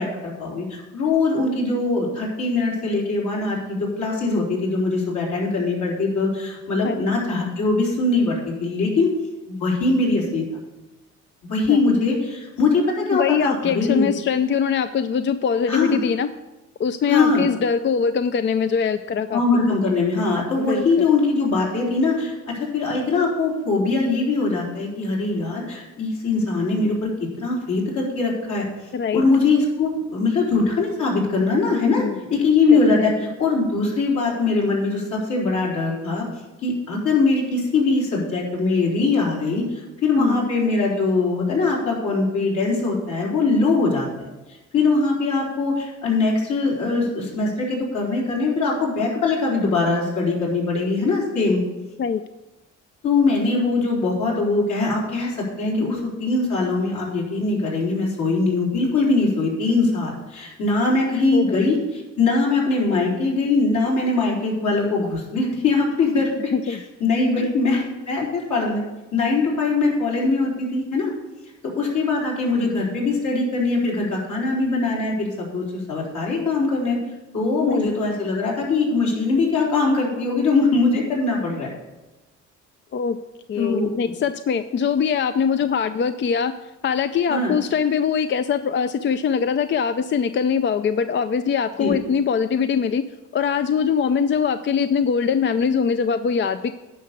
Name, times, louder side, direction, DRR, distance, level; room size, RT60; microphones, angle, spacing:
voice 1, 0.0-9.1 9.5-10.4 11.5-14.1 15.7-16.0 17.1-17.4 19.3-27.1 27.4-28.7 29.1-32.0 32.3-36.2 36.6-44.3 44.7-51.6 53.0-66.3 66.7-68.8 69.1-71.1 71.6-77.0 77.3-81.7 83.6-83.9 87.3-87.6 91.8-92.0, left 3 dB, 70° left, -4 dB, 4.0 m, -22 dB
voice 2, 13.1-16.3 16.8-19.4 20.6-21.1 28.9-29.3 31.7-32.2 32.7-33.3 40.2-40.5 52.0-52.2 61.3-61.6 66.5-66.8 67.4-67.5 77.7-77.9 82.9-83.2 83.5-86.5 86.8-93.0 93.3-96.7, left 6 dB, 40° left, 11 dB, 0.4 m, -22 dB
10.0 x 5.7 x 6.7 m, 1.1 s
cardioid pair, 90°, 30 cm